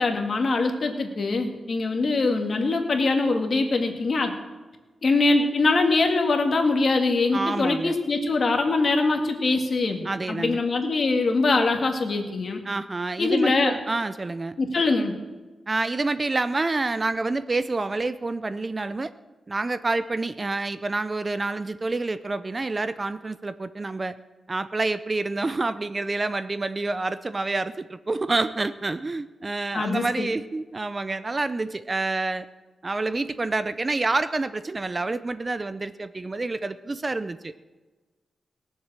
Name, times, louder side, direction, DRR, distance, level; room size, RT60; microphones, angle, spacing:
voice 1, 0.0-4.3 5.0-10.0 10.3-12.6 13.2-13.8 14.6-15.1 29.7-30.3, left 3 dB, 50° left, 4 dB, 1.9 m, -23 dB
voice 2, 7.3-7.9 10.0-10.6 12.6-14.6 15.7-19.1 19.5-24.1 24.5-32.5 32.8-37.5, right 3 dB, 30° right, 13 dB, 0.5 m, -28 dB
18.5 x 7.4 x 7.4 m, 1.3 s
wide cardioid pair, 120°, 0 cm